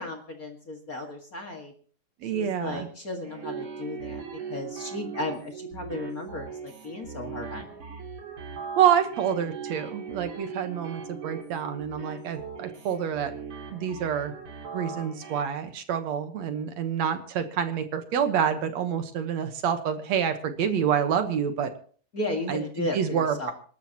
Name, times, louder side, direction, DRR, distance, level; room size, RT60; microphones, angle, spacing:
voice 1, 0.0-1.7 2.3-4.2 4.5-7.7 22.1-23.5, left 2 dB, 35° left, 3 dB, 1.9 m, -35 dB
voice 2, 2.2-2.9 8.8-13.3 13.7-14.3 14.7-21.7 22.5-23.5, right 8 dB, 70° right, 8 dB, 2.3 m, -27 dB
sound 1, 3.2-15.4, right 6 dB, 45° right, 3.7 m, -39 dB
27.0 x 12.5 x 2.9 m, 0.44 s
omnidirectional pair, 3.4 m